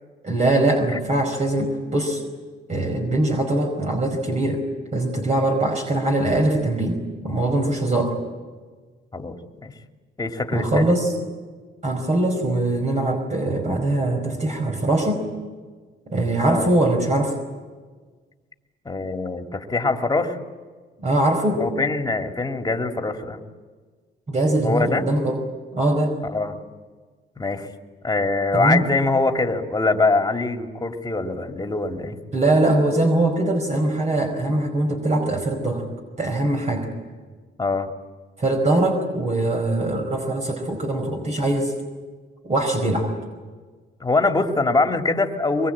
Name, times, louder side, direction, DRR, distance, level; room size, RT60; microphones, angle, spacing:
voice 1, 0.2-2.2 2.7-4.6 4.9-8.1 10.5-11.1 11.8-15.3 16.1-17.4 21.0-21.6 24.3-25.4 25.7-26.2 28.5-28.9 32.3-35.8 36.2-36.9 38.4-41.7 42.4-43.1, right 2 dB, 35° right, 2 dB, 4.9 m, -22 dB
voice 2, 0.9-1.3 9.1-9.7 10.2-10.9 16.5-16.7 18.8-20.4 21.6-23.4 24.6-25.0 26.3-26.6 27.4-27.7 28.0-32.2 37.6-37.9 44.0-45.7, left 3 dB, 20° left, 4 dB, 2.7 m, -23 dB
24.0 x 22.5 x 8.8 m, 1.4 s
cardioid pair, 90°, 20 cm